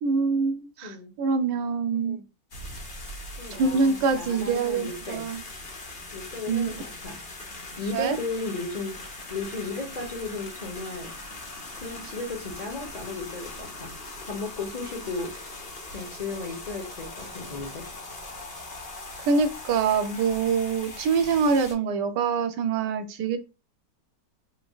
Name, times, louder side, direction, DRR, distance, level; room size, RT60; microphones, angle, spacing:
voice 1, 0.0-2.2 3.6-5.4 6.5-6.8 7.9-8.2 19.3-23.4, right 5 dB, 75° right, 8 dB, 1.1 m, -25 dB
voice 2, 0.8-1.1 1.9-2.2 3.4-5.2 6.1-7.2 7.8-11.1 11.8-13.9 14.2-15.3 15.9-17.9, left 3 dB, 70° left, -1 dB, 0.4 m, -35 dB
sound 1, 2.5-21.7, left 2 dB, 40° left, 0.9 m, -41 dB
4.7 x 3.3 x 2.3 m, 0.29 s
omnidirectional pair, 2.0 m